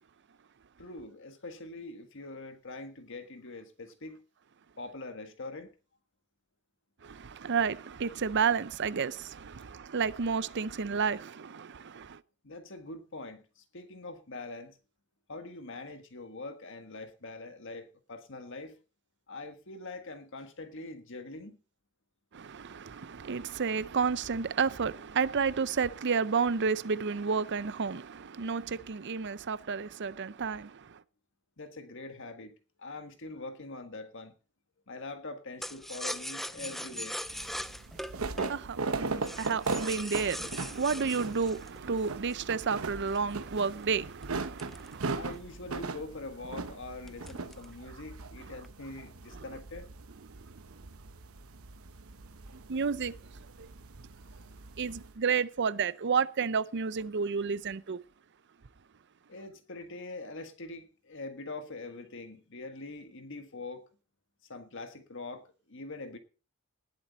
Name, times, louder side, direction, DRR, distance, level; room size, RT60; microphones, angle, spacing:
voice 1, 0.8-4.2 4.8-5.7 12.4-14.8 15.3-18.8 19.3-21.6 31.6-32.5 32.8-34.3 34.9-37.2 45.1-49.9 59.3-63.8 64.4-66.2, left 2 dB, 60° left, 1.6 m, -43 dB
voice 2, 7.0-12.2 22.3-31.0 38.2-45.3 49.3-49.4 52.5-53.1 53.6-53.7 54.8-58.0, right 5 dB, 55° right, 0.6 m, -31 dB
sound 1, 35.6-42.5 43.1-45.5 45.9-46.0 46.3-46.6 47.1-47.8 48.1-48.7, equal, ahead, 0.5 m, -41 dB
sound 2, 37.3-55.1, right 3 dB, 75° right, 1.0 m, -39 dB
19.0 x 7.5 x 4.0 m
head